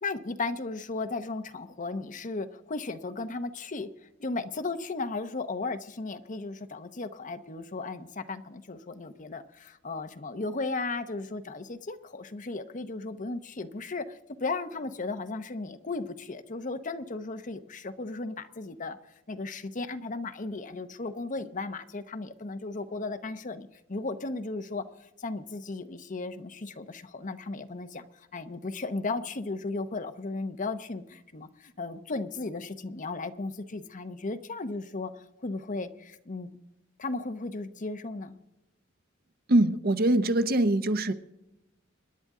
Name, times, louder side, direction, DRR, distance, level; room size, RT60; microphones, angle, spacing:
voice 1, 0.0-3.9 4.2-19.0 19.3-35.1 35.4-36.5 37.0-38.4, left 3 dB, 40° left, 9 dB, 0.8 m, -35 dB
voice 2, 39.5-41.1, right 1 dB, 50° right, 11 dB, 0.8 m, -23 dB
26.5 x 10.5 x 3.7 m, 0.94 s
head